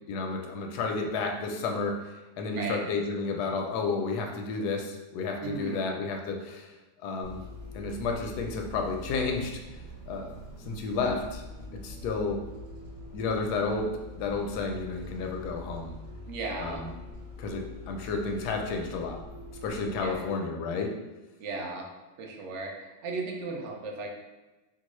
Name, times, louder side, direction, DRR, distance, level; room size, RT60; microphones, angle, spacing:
voice 1, 0.1-6.7 7.0-7.4 7.7-9.6 10.1-10.4 10.7-11.4 11.7-12.4 13.1-15.9 16.6-16.9 17.4-19.2 19.6-21.0, left 4 dB, 85° left, 2 dB, 1.1 m, -31 dB
voice 2, 5.4-6.0 16.3-16.8 20.0-20.3 21.4-21.9 22.2-24.1, right 3 dB, 65° right, 0 dB, 0.8 m, -36 dB
Bus, 7.2-20.1, left 1 dB, 40° right, 1.9 m, -44 dB
3.7 x 2.3 x 3.0 m, 1.1 s
omnidirectional pair, 1.7 m